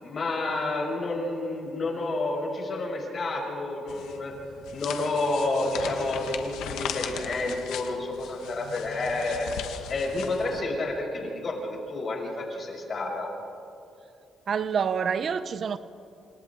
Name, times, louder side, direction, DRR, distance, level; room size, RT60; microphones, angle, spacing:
voice 1, 0.0-4.3 4.7-13.3, left 2 dB, 45° left, -1 dB, 7.2 m, -30 dB
sound 1, 3.9-10.6, left 8 dB, 90° left, 1.5 m, -38 dB
voice 2, 14.5-15.8, right 6 dB, 55° right, 14 dB, 0.7 m, -27 dB
28.5 x 26.5 x 3.9 m, 2.6 s
cardioid pair, 90°, 0 cm